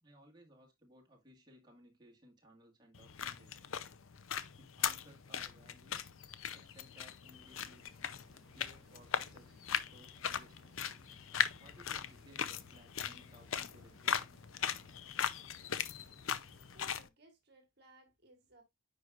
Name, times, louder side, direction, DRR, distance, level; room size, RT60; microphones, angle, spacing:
voice 1, 0.0-3.7 4.6-6.1 6.5-7.9 8.5-10.9 11.6-14.3, equal, 20° right, 1.8 m, -61 dB
sound 1, 2.9-17.1, left 8 dB, 85° left, 0.6 m, -39 dB
sound 2, 7.2-17.0, equal, ahead, 2.2 m, -65 dB
voice 2, 16.7-18.6, right 1 dB, 50° right, 1.4 m, -62 dB
9.3 x 4.8 x 2.4 m
head